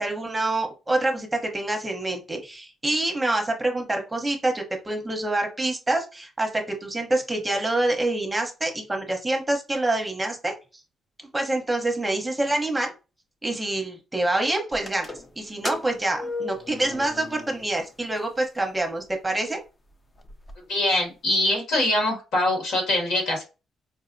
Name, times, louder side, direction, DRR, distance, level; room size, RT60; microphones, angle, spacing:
voice 1, 0.0-10.5 11.3-12.9 13.4-19.6, right 2 dB, 15° right, 2 dB, 0.8 m, -26 dB
sound 1, 14.7-17.9 18.2-18.3 19.1-19.2 19.6-19.7 19.9-20.5, left 2 dB, 30° left, 0.5 m, -36 dB
voice 2, 20.7-23.4, left 1 dB, 75° left, 0 dB, 1.7 m, -23 dB
4.5 x 2.1 x 2.5 m, 0.30 s
cardioid pair, 90°, 0 cm